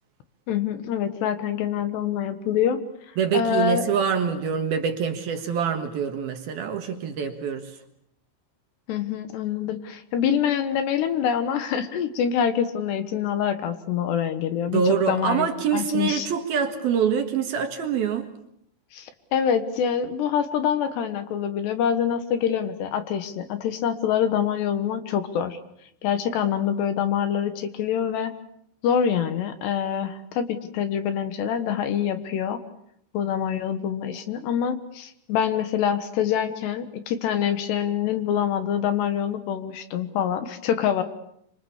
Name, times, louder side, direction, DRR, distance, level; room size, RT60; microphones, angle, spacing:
voice 1, 0.5-2.8 3.3-3.8 8.9-14.8 15.1-16.3 18.9-25.6 26.0-28.3 28.8-32.6 33.1-41.0, left 8 dB, 70° left, 10 dB, 3.2 m, -25 dB
voice 2, 3.2-7.7 14.7-18.3, right 7 dB, 60° right, 6 dB, 3.1 m, -25 dB
27.0 x 25.5 x 7.2 m, 0.72 s
omnidirectional pair, 5.5 m